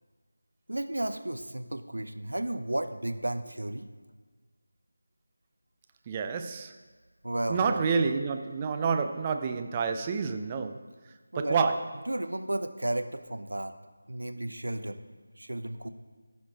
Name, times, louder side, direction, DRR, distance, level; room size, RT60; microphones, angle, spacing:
voice 1, 0.7-3.9 7.2-7.8 11.3-11.7 12.1-13.7 14.1-15.0 15.4-15.9, right 1 dB, 70° right, 9 dB, 0.7 m, -33 dB
voice 2, 6.1-6.7 7.5-10.8 11.4-11.8, right 5 dB, 20° right, 6 dB, 0.4 m, -28 dB
14.5 x 5.1 x 3.5 m, 1.4 s
figure-of-eight pair, 165°, 0 cm